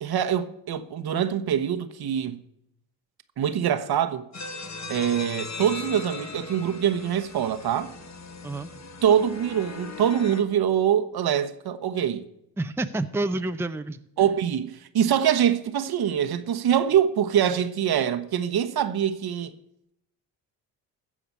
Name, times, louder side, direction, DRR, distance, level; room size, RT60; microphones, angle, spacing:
voice 1, 0.0-2.4 3.4-4.2 4.9-7.9 9.0-12.3 14.2-19.5, right 9 dB, 55° right, 1.2 m, -24 dB
sound 1, 4.3-10.4, left 3 dB, 35° left, 1.6 m, -38 dB
voice 2, 12.6-14.0, right 2 dB, 5° right, 0.7 m, -28 dB
15.0 x 5.0 x 8.4 m
supercardioid pair, 65°, 45 cm